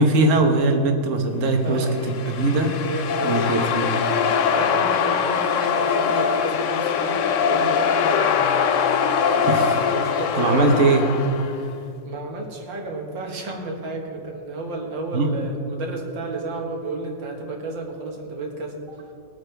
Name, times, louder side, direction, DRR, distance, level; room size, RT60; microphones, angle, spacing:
voice 1, 0.0-2.8 3.2-3.9 9.5-9.8 10.4-11.1 15.1-15.3, right 2 dB, 45° right, 4 dB, 1.4 m, -20 dB
voice 2, 1.6-2.1 2.8-3.7 4.5-11.2 11.6-18.8, right 2 dB, 75° right, 1 dB, 2.3 m, -32 dB
sound 1, 1.8-11.7, left 7 dB, 75° left, 0.7 m, -22 dB
20.5 x 9.0 x 3.4 m, 2.4 s
omnidirectional pair, 2.0 m